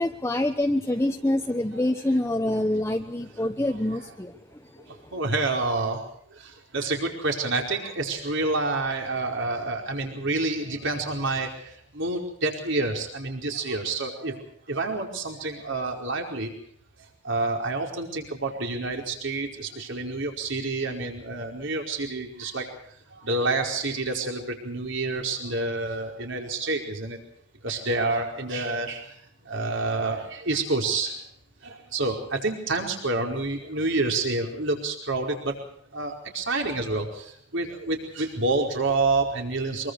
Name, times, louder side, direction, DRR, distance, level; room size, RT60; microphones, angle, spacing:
voice 1, 0.0-4.4, left 1 dB, 15° left, 4 dB, 1.1 m, -26 dB
voice 2, 4.9-6.0 6.3-16.5 17.2-22.7 23.1-27.2 27.6-31.2 31.6-35.5 35.9-39.9, right 3 dB, 65° right, 2 dB, 4.9 m, -28 dB
25.0 x 23.5 x 4.8 m, 0.66 s
head